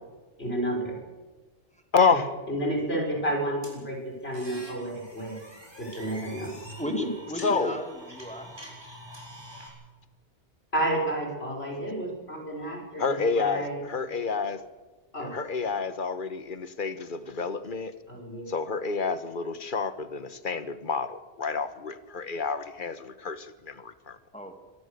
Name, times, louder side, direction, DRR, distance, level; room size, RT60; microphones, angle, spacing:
voice 1, 0.4-1.0 2.1-2.2 2.5-5.4 5.8-6.5 6.9-7.1 10.7-13.8 15.1-15.4 18.1-18.5, right 1 dB, 80° left, 0 dB, 6.5 m, -31 dB
voice 2, 1.9-2.3 7.4-7.8 13.0-14.6 15.2-17.9 18.5-24.2, left 5 dB, 55° left, 11 dB, 1.5 m, -29 dB
sound 1, 3.6-9.7, equal, 25° right, 7.1 m, -45 dB
voice 3, 6.8-8.5 24.3-24.6, left 1 dB, 5° left, 4 dB, 2.7 m, -35 dB
25.0 x 18.5 x 6.9 m, 1.3 s
omnidirectional pair, 1.0 m